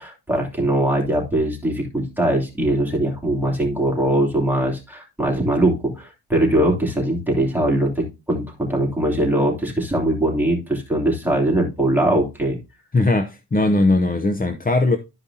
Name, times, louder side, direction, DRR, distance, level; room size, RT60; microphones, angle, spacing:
voice 1, 0.0-12.6, right 1 dB, 5° right, 2.9 m, -21 dB
voice 2, 12.9-15.0, left 2 dB, 20° left, 0.6 m, -19 dB
12.5 x 5.2 x 2.7 m
cardioid pair, 90°, 47 cm